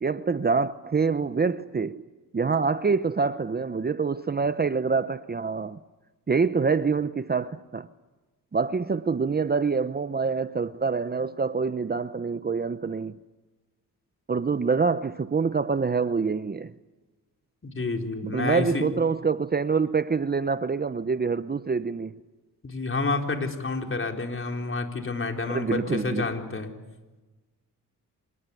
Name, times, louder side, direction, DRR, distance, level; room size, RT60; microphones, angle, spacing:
voice 1, 0.0-2.0 2.3-5.8 6.3-7.9 8.5-13.2 14.3-16.7 18.2-22.2 25.5-26.3, right 5 dB, 25° right, 0.8 m, -26 dB
voice 2, 17.6-18.8 22.6-26.7, left 3 dB, 30° left, 4.3 m, -29 dB
26.0 x 21.0 x 9.7 m
cardioid pair, 80°, 38 cm